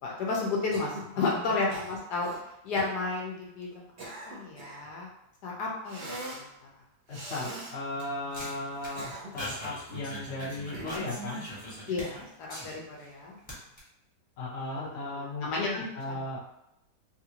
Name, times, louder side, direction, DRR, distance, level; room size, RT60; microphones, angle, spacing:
voice 1, 0.0-2.3 2.6-5.1 5.4-6.5 11.9-13.3 14.8-16.2, left 3 dB, 70° left, -2 dB, 1.2 m, -33 dB
Cough, 0.7-1.1 1.7-2.4 2.8-3.0 3.7-4.9 5.9-6.5 7.1-7.8 8.7-9.5 10.7-11.2, right 1 dB, 55° right, 0.8 m, -41 dB
voice 2, 1.1-1.5 7.1-11.4 14.4-16.4, left 2 dB, 50° left, -5 dB, 0.9 m, -36 dB
sound 1, 7.2-13.1 13.4-13.8, equal, 5° left, 0.9 m, -42 dB
3.4 x 2.5 x 2.8 m, 0.83 s
omnidirectional pair, 1.9 m